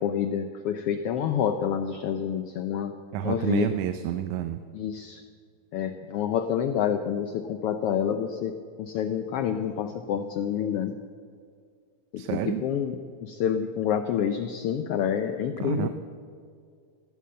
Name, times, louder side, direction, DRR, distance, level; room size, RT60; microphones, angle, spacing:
voice 1, 0.0-3.0 3.2-3.7 4.7-5.2 5.7-11.1 12.1-13.0 13.2-15.9, left 8 dB, 90° left, 8 dB, 1.3 m, -28 dB
voice 2, 3.1-4.6 12.2-12.6 15.6-15.9, right 11 dB, 80° right, 9 dB, 2.0 m, -29 dB
16.5 x 11.0 x 7.6 m, 2.2 s
omnidirectional pair, 3.4 m